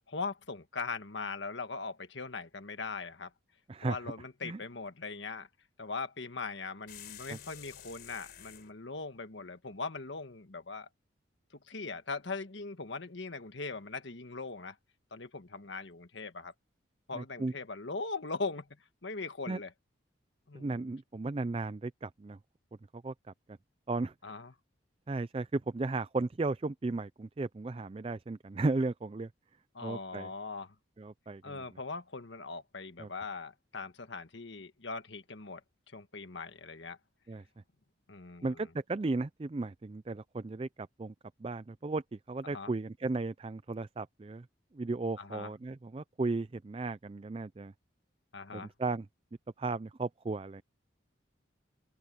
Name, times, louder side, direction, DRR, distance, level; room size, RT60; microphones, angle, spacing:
voice 1, 0.1-3.3 3.8-5.5 5.8-10.9 11.7-14.8 15.1-16.5 17.1-18.7 19.0-19.7 20.5-20.8 24.2-24.5 29.7-30.7 31.4-35.6 35.9-37.0 38.1-38.6 42.4-42.7 45.2-45.5 48.3-48.7, left 4 dB, 75° left, 1.5 m, -40 dB
voice 2, 3.7-4.1 4.4-4.6 7.3-7.4 17.1-17.5 19.5-19.6 20.5-22.4 22.9-23.1 23.9-24.1 25.1-29.3 29.8-30.3 31.0-31.7 33.0-33.1 37.3-37.4 38.4-41.1 41.4-44.5 44.7-47.7 48.5-49.1 49.6-50.6, right 3 dB, 30° right, 0.4 m, -35 dB
sound 1, 6.9-8.7, left 10 dB, 50° left, 3.7 m, -50 dB
open air
head